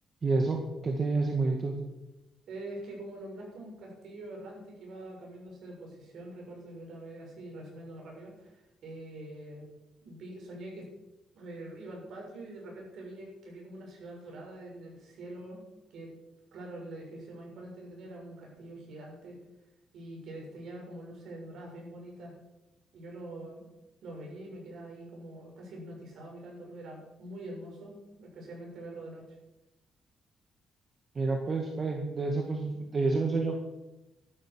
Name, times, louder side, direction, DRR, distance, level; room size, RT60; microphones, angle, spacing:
voice 1, 0.2-1.7 31.2-33.6, right 3 dB, 40° right, 1 dB, 2.0 m, -29 dB
voice 2, 2.5-9.6 10.0-10.9 11.3-15.6 15.9-16.1 16.5-19.4 19.9-22.3 22.9-23.6 24.0-29.2, right 1 dB, 70° right, -1 dB, 6.8 m, -44 dB
14.0 x 12.0 x 6.3 m, 1.0 s
cardioid pair, 100°, 0 cm